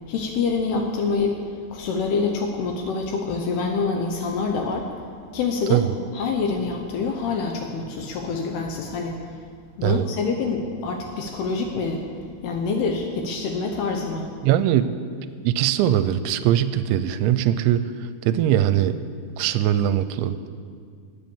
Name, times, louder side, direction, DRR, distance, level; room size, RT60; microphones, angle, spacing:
voice 1, 0.1-1.4 1.7-4.9 5.3-5.8 6.1-9.4 9.8-12.1 12.4-14.3, left 4 dB, 75° left, 3 dB, 2.6 m, -26 dB
voice 2, 14.4-14.9 15.4-17.8 18.2-18.9 19.4-20.5, right 11 dB, 85° right, 13 dB, 2.8 m, -21 dB
19.5 x 8.2 x 7.1 m, 2.1 s
omnidirectional pair, 5.5 m